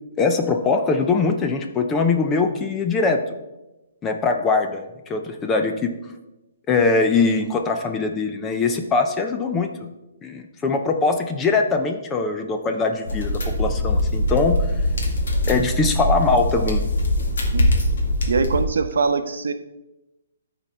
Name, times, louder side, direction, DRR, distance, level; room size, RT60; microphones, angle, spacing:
voice 1, 0.2-3.2 4.0-4.8 5.1-5.9 6.7-9.7 10.2-14.6 15.5-16.8, left 4 dB, 10° left, 5 dB, 0.4 m, -22 dB
sound 1, 13.0-18.6, left 1 dB, 65° left, 1.8 m, -22 dB
voice 2, 18.3-19.5, right 4 dB, 80° right, 9 dB, 0.7 m, -22 dB
12.0 x 4.3 x 4.1 m, 1.0 s
hypercardioid pair, 175°, 0 cm